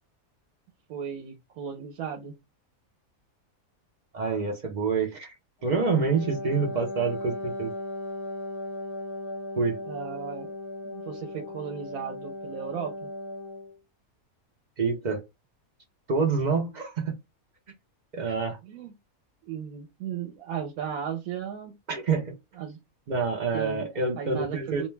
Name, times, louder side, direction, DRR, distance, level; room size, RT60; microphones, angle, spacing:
voice 1, 0.9-2.3 9.9-10.5 10.8-13.1 18.3-18.4 18.6-18.9 19.4-21.7 22.5-22.8 23.5-23.9 24.2-24.9, right 8 dB, 85° right, 1.0 m, -36 dB
voice 2, 4.1-5.3 5.6-7.7 9.6-9.8 14.8-15.2 16.1-17.2 18.1-18.6 21.9-22.3 23.1-24.9, right 4 dB, 55° right, 0.5 m, -27 dB
Wind instrument woodwind instrument, 5.6-13.8, left 2 dB, 50° left, 0.3 m, -37 dB
2.4 x 2.2 x 3.1 m
omnidirectional pair, 1.5 m